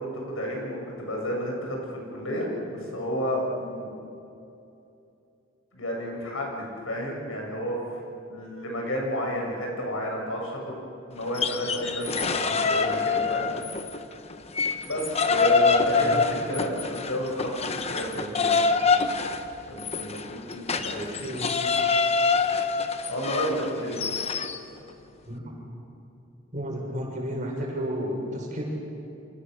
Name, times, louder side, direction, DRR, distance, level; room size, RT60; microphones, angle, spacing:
voice 1, 0.0-1.8 2.1-4.0 5.7-7.8 8.3-10.8 11.1-13.5 14.7-18.6 19.7-21.3 23.1-24.1, equal, 90° left, -1 dB, 7.7 m, -31 dB
sound 1, 11.2-14.0 14.3-24.6, left 4 dB, 30° left, 1.1 m, -25 dB
voice 2, 15.4-16.2 21.2-21.5 25.2-25.6 26.5-28.6, equal, 40° right, -1 dB, 7.0 m, -32 dB
30.0 x 27.0 x 6.8 m, 2.7 s
head